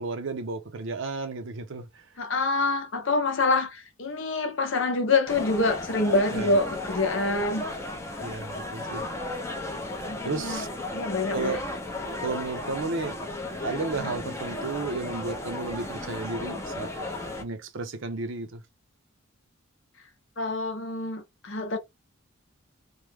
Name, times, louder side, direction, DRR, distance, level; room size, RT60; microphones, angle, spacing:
voice 1, 0.0-2.1 6.3-6.5 8.2-9.0 10.2-10.9 11.3-11.6 12.2-13.1 13.6-16.9 17.4-18.6, right 3 dB, 60° right, 0.6 m, -33 dB
voice 2, 2.2-7.6 10.0-10.6 10.9-11.6 14.0-14.1 20.4-21.8, left 3 dB, 60° left, 0.7 m, -26 dB
sound 1, 5.3-17.4, left 2 dB, 15° left, 0.5 m, -35 dB
3.1 x 2.1 x 3.4 m
head